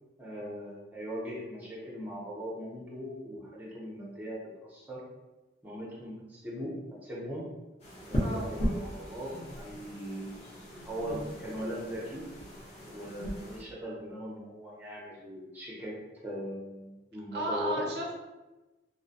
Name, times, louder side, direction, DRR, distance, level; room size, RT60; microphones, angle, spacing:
voice 1, 0.2-5.0 5.6-6.7 7.0-7.5 8.1-10.5 10.8-12.2 12.9-15.9 16.2-17.8, equal, 10° right, -6 dB, 0.6 m, -39 dB
sound 1, 7.8-13.6, equal, 35° left, 0.7 m, -37 dB
voice 2, 17.3-18.1, right 1 dB, 60° right, -1 dB, 0.4 m, -33 dB
2.4 x 2.1 x 2.6 m, 1.1 s
head